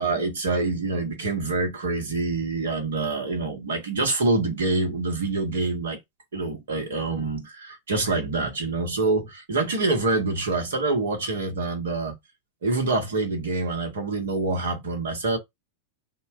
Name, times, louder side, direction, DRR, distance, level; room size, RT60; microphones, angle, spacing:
voice 1, 0.0-6.0 6.3-12.2 12.6-15.4, right 3 dB, 60° right, 1.4 m, -26 dB
3.7 x 2.3 x 4.5 m
figure-of-eight pair, 90°, 0 cm